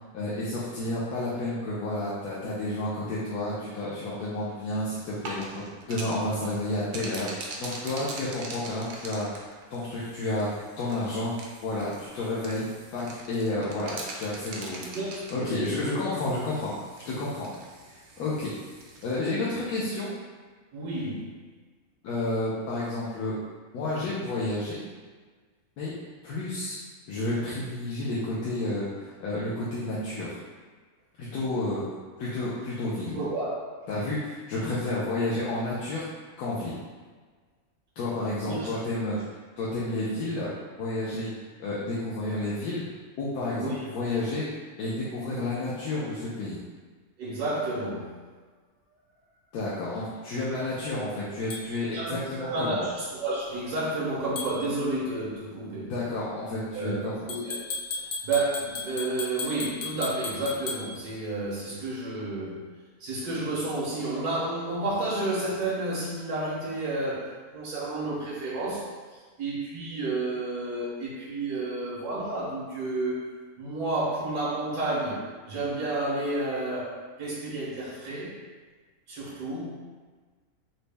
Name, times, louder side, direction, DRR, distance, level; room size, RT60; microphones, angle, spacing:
voice 1, 0.1-7.3 7.6-11.3 11.6-12.6 12.9-14.8 15.3-16.7 17.1-17.5 17.9-18.5 19.0-20.1 22.0-23.4 23.7-24.9 25.8-26.0 26.2-26.8 27.1-30.4 31.2-31.9 32.2-33.2 33.9-36.0 36.4-36.8 38.0-39.2 39.6-40.5 40.8-41.3 41.6-42.8 43.2-44.5 44.8-46.6 49.5-52.9 55.9-57.3, left 2 dB, 85° left, -8 dB, 1.2 m, -31 dB
sound 1, 5.0-19.2, right 2 dB, 65° right, 0.7 m, -43 dB
voice 2, 14.7-15.6 20.7-21.3 33.1-33.6 38.4-38.7 43.6-43.8 47.2-48.2 51.9-55.9 56.7-57.0 57.3-57.6 57.9-62.6 63.0-68.9 69.4-73.3 73.6-78.3 79.1-79.9, right 2 dB, 80° right, -7 dB, 1.3 m, -31 dB
sound 2, 51.5-51.6 54.4-54.6 57.3-60.8, left 3 dB, 65° left, 0.9 m, -35 dB
4.1 x 2.1 x 3.2 m, 1.4 s
omnidirectional pair, 1.6 m